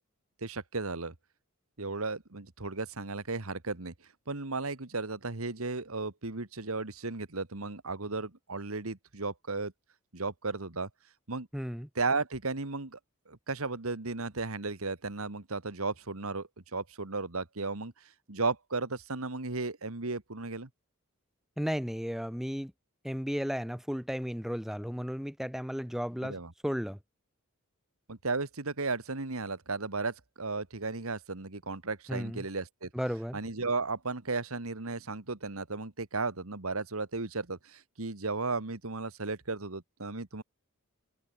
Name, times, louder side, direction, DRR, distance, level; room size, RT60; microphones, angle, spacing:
voice 1, 0.4-1.1 1.8-3.9 4.3-9.7 10.1-10.9 11.3-11.5 12.0-13.0 13.3-17.9 18.3-20.7 26.2-26.5 28.1-32.9 33.3-40.4, right 3 dB, 80° right, 1.9 m, -35 dB
voice 2, 11.5-11.9 21.6-22.7 23.0-26.4 26.6-27.0 32.1-32.4 32.9-33.4, equal, ahead, 0.6 m, -34 dB
head